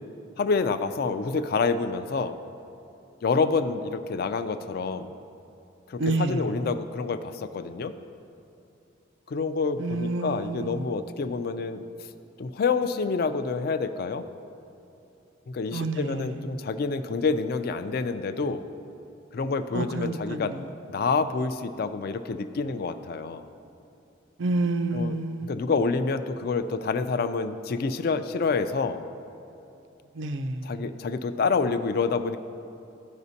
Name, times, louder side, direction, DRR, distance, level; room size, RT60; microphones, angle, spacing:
voice 1, 0.4-2.4 3.2-5.2 5.9-7.9 9.3-11.8 12.4-14.2 15.5-18.7 19.3-20.5 20.9-23.5 24.9-25.1 25.4-29.0 30.6-32.4, left 4 dB, 50° left, 10 dB, 0.3 m, -27 dB
voice 2, 6.0-6.5 9.8-11.0 15.7-16.6 19.7-20.7 24.4-25.7 30.1-30.8, right 2 dB, 75° right, 9 dB, 0.4 m, -29 dB
13.0 x 5.0 x 2.7 m, 2.9 s
head